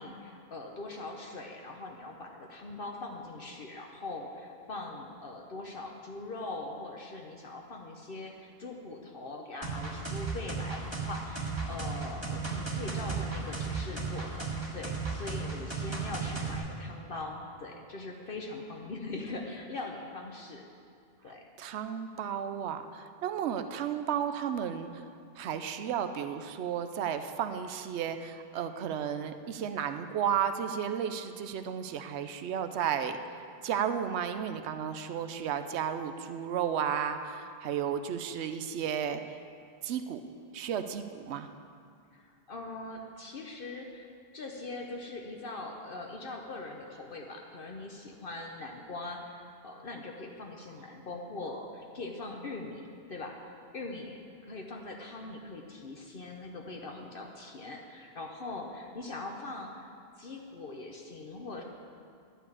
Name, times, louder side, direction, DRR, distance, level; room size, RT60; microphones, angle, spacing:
voice 1, 0.0-14.5 14.7-20.6 21.2-21.5 42.1-44.1 44.3-59.9 60.2-61.6, left 2 dB, 55° left, 1 dB, 1.1 m, -42 dB
sound 1, 9.6-16.6, right 4 dB, 25° right, 1.8 m, -34 dB
voice 2, 21.6-25.0 25.4-33.2 33.6-39.4 39.8-40.2 40.5-41.5, right 8 dB, 80° right, 9 dB, 0.9 m, -33 dB
11.5 x 5.7 x 8.4 m, 2.3 s
omnidirectional pair, 1.1 m